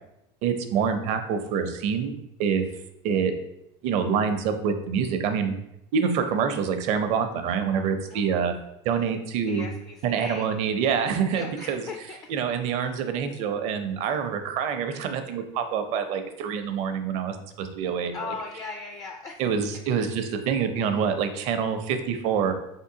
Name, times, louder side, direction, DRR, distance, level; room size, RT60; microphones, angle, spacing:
voice 1, 0.4-2.6 3.0-3.3 3.8-5.5 5.9-8.5 8.8-9.7 10.0-11.9 12.3-18.3 19.4-22.5, right 7 dB, 50° right, 8 dB, 0.5 m, -26 dB
voice 2, 8.1-8.5 9.5-10.5 11.3-12.3 18.1-19.4, left 4 dB, 25° left, 3 dB, 0.3 m, -38 dB
4.4 x 3.6 x 2.7 m, 0.84 s
supercardioid pair, 140°, 15 cm